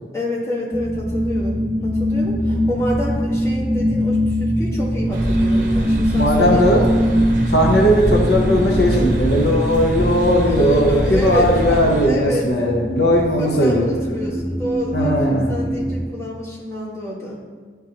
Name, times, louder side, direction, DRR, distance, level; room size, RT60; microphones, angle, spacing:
voice 1, 0.1-6.6 7.9-8.0 10.4-12.5 13.4-17.4, left 1 dB, 15° left, -7 dB, 1.5 m, -28 dB
sound 1, 0.7-16.1, equal, ahead, 0.3 m, -22 dB
sound 2, 5.1-12.1, right 1 dB, 45° right, 0.7 m, -25 dB
voice 2, 6.2-6.8 7.5-13.9 14.9-15.5, equal, 65° left, -1 dB, 0.8 m, -17 dB
10.5 x 3.8 x 2.8 m, 1.5 s
head